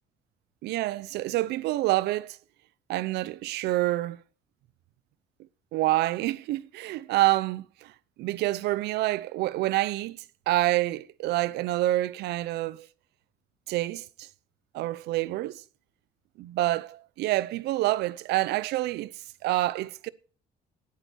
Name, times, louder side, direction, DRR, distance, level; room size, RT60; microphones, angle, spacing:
voice 1, 0.6-2.4 2.9-4.2 5.7-7.9 8.2-10.2 10.5-12.9 13.7-14.3 14.7-15.6 16.4-19.1 19.4-20.1, right 16 dB, 80° right, 0.7 m, -27 dB
17.0 x 8.8 x 4.6 m
cardioid pair, 110°, 17 cm